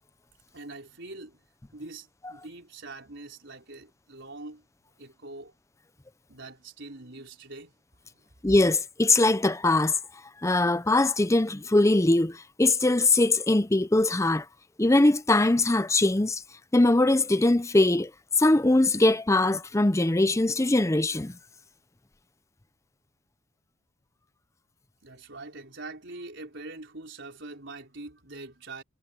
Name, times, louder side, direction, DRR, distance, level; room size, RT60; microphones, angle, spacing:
voice 1, 0.5-1.4 1.7-4.6 5.0-5.5 6.3-7.7 8.1-8.3 25.0-28.8, right 2 dB, 55° right, 5.0 m, -43 dB
voice 2, 8.4-10.0 10.4-14.4 14.8-16.4 16.7-18.1 18.4-21.3, left 2 dB, 15° left, 0.6 m, -22 dB
head